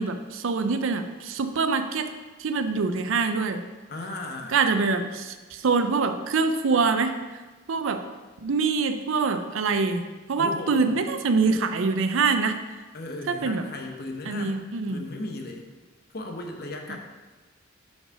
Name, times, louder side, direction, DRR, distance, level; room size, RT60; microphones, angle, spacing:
voice 1, 0.0-2.1 2.4-3.6 4.5-7.2 7.7-8.0 8.4-10.0 10.3-12.6 13.3-13.6 14.3-15.0, right 4 dB, 80° right, 8 dB, 0.5 m, -24 dB
voice 2, 3.9-4.7 10.4-11.0 12.9-14.6 14.9-15.7 16.1-17.0, left 2 dB, 50° left, 2 dB, 0.9 m, -36 dB
5.4 x 4.6 x 5.9 m, 1.3 s
head